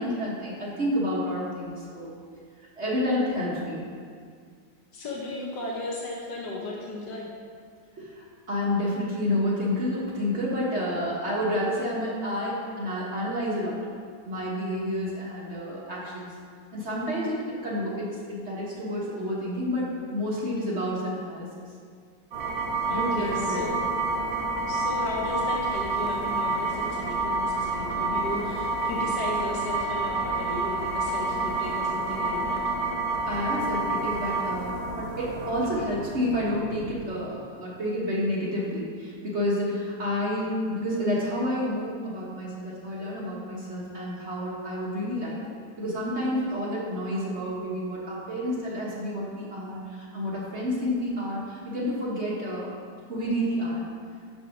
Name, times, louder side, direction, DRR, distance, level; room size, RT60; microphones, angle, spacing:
voice 1, 0.0-2.1 2.8-3.8 8.0-13.8 14.2-16.3 16.7-21.5 22.9-23.7 33.2-45.4 45.8-52.7 53.1-53.8, left 1 dB, 40° right, -6 dB, 1.4 m, -29 dB
voice 2, 4.9-7.3 22.9-23.8 24.7-32.6, left 2 dB, 65° left, -4 dB, 1.4 m, -35 dB
sound 1, 22.3-37.3, right 2 dB, 70° right, 1.8 m, -29 dB
10.0 x 3.5 x 5.9 m, 2.1 s
omnidirectional pair, 2.1 m